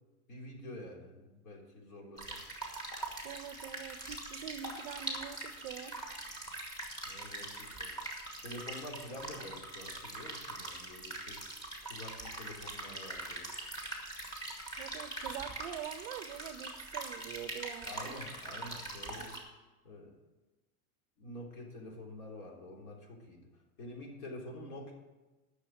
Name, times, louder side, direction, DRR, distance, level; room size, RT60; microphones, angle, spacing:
voice 1, 0.3-2.4 7.1-7.9 8.4-11.4 11.8-13.5 17.8-19.3 19.8-20.1 21.2-24.9, left 1 dB, 80° left, 0 dB, 3.6 m, -47 dB
sound 1, 2.2-19.4, right 2 dB, 10° left, 1.4 m, -42 dB
voice 2, 3.2-6.0 14.8-18.2 19.2-19.4, right 10 dB, 40° right, 12 dB, 0.5 m, -45 dB
11.0 x 6.4 x 7.6 m, 1.1 s
supercardioid pair, 180°, 43 cm